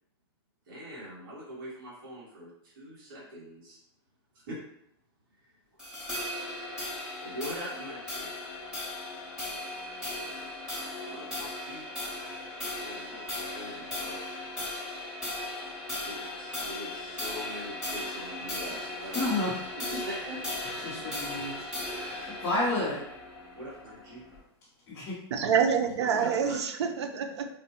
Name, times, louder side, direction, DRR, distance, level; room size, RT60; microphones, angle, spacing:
voice 1, 0.6-3.8 4.3-4.6 7.2-8.3 10.6-10.7 11.1-11.9 12.8-14.2 16.0-19.3 19.8-20.4 23.5-24.2 26.0-26.6, equal, 50° right, -7 dB, 1.4 m, -42 dB
sound 1, 5.8-24.4, left 1 dB, 5° right, 0.9 m, -37 dB
voice 2, 19.1-20.0 20.8-23.0 24.9-25.2, left 2 dB, 20° left, -8 dB, 0.7 m, -32 dB
voice 3, 25.3-27.5, right 7 dB, 85° right, 6 dB, 0.5 m, -27 dB
4.4 x 2.1 x 2.8 m, 0.75 s
supercardioid pair, 170°, 14 cm